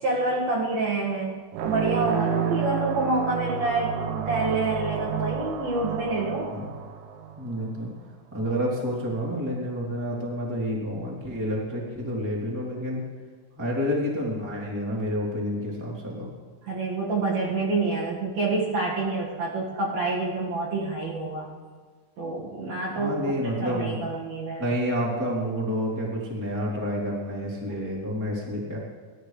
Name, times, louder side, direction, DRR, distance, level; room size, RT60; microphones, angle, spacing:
voice 1, 0.0-6.6 16.6-21.5 22.2-23.1 23.6-24.6, right 3 dB, 55° right, -4 dB, 3.2 m, -27 dB
sound 1, 1.5-7.7, right 8 dB, 75° right, 3.1 m, -30 dB
voice 2, 7.4-7.9 8.3-13.0 13.6-16.3 22.9-24.0 24.6-28.8, equal, 5° right, -4 dB, 2.2 m, -29 dB
30.0 x 13.5 x 3.3 m, 1.5 s
omnidirectional pair, 5.7 m